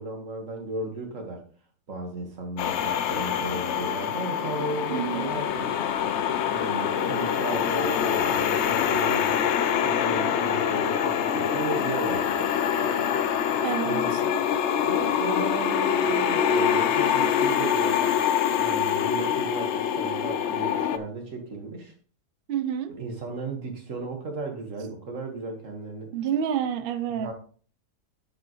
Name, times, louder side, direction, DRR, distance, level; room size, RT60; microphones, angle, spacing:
voice 1, 0.0-1.4 1.9-5.7 6.5-9.5 9.8-12.5 13.8-14.3 14.8-18.2 18.5-21.9 22.9-26.1 27.2-27.3, right 3 dB, 50° right, 1.9 m, -35 dB
sound 1, 2.6-21.0, left 8 dB, 70° left, 0.6 m, -25 dB
voice 2, 4.9-5.3 13.6-14.2 22.5-22.9 26.1-27.3, right 9 dB, 85° right, 0.5 m, -28 dB
11.0 x 5.0 x 3.1 m
omnidirectional pair, 1.8 m